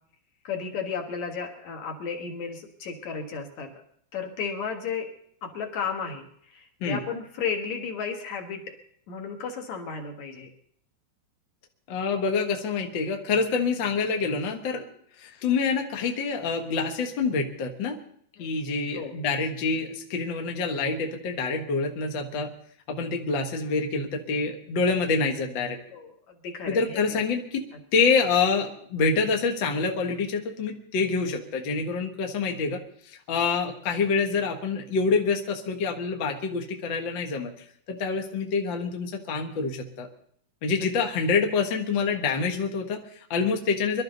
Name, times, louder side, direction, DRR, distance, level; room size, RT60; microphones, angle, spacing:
voice 1, 0.4-3.8 4.1-5.1 5.4-8.7 9.1-10.5 18.4-18.6 18.9-19.1 25.9-26.1 26.4-27.2, left 6 dB, 55° left, 3 dB, 2.6 m, -33 dB
voice 2, 11.9-14.8 15.2-18.0 18.4-22.5 22.9-25.8 26.7-27.6 27.9-37.5 37.9-40.1 40.6-44.0, left 4 dB, 70° left, 3 dB, 1.1 m, -26 dB
23.5 x 12.5 x 4.0 m, 0.63 s
omnidirectional pair, 4.6 m